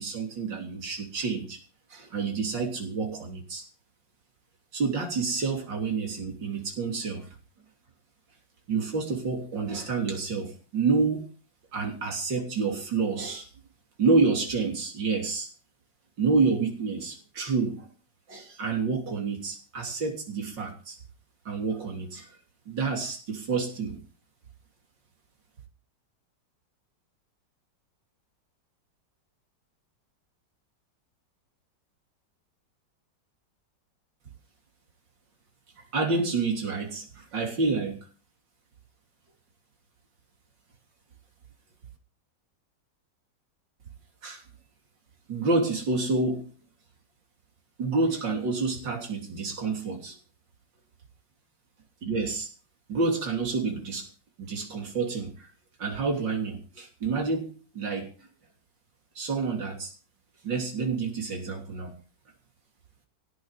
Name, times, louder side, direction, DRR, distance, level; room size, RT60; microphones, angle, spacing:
voice 1, 0.0-1.6 1.9-3.6 4.7-7.3 8.7-11.3 11.7-13.5 14.0-15.5 16.2-17.9 18.3-21.0 21.5-22.3 22.7-24.0 35.9-38.0 44.2-44.4 45.3-46.5 47.8-50.2 52.0-52.5 52.9-54.1 54.4-55.5 55.8-58.1 59.2-59.9 60.4-61.9, right 4 dB, 80° right, 2 dB, 3.9 m, -28 dB
16.5 x 6.5 x 9.2 m, 0.36 s
omnidirectional pair, 1.9 m